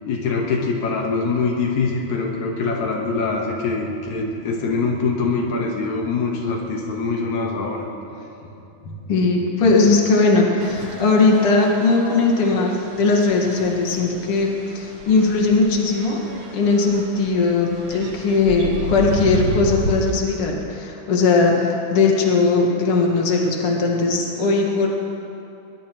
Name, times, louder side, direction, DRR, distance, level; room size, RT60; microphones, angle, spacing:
voice 1, 0.1-7.9 8.8-9.1, left 4 dB, 75° left, -1 dB, 2.8 m, -24 dB
voice 2, 9.1-16.2 16.5-24.9, left 3 dB, 55° left, -1 dB, 2.6 m, -19 dB
sound 1, 10.6-20.1, right 2 dB, 55° right, 2.6 m, -32 dB
21.5 x 21.0 x 3.1 m, 2.8 s
omnidirectional pair, 3.3 m